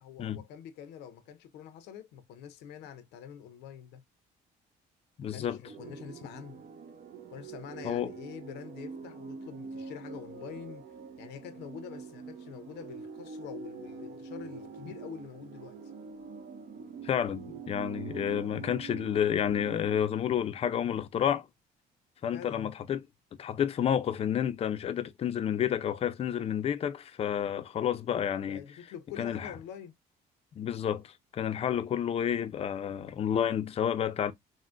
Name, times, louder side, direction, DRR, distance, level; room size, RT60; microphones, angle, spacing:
voice 1, 0.0-4.0 5.3-6.6 7.3-10.8 11.2-15.8 22.3-22.7 28.5-30.0, left 8 dB, 85° left, 0.6 m, -46 dB
voice 2, 5.2-5.6 7.8-8.1 17.0-21.5 22.2-23.0 23.4-28.6 29.2-29.5 30.6-34.3, left 9 dB, 35° left, 0.4 m, -30 dB
sound 1, 5.6-20.0, right 6 dB, 60° right, 0.5 m, -44 dB
3.6 x 2.1 x 2.4 m
cardioid pair, 110°, 17 cm